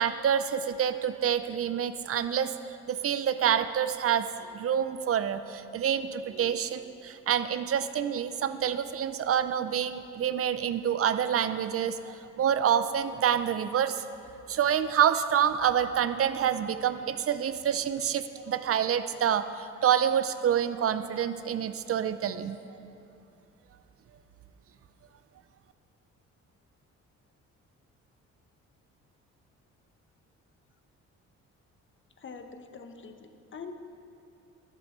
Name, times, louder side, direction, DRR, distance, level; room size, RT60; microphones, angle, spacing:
voice 1, 0.0-2.5 2.9-14.0 14.5-22.6, right 9 dB, 50° right, 11 dB, 0.6 m, -27 dB
voice 2, 32.2-33.7, left 5 dB, 40° left, 6 dB, 1.1 m, -44 dB
12.0 x 7.7 x 6.5 m, 2.7 s
cardioid pair, 90°, 30 cm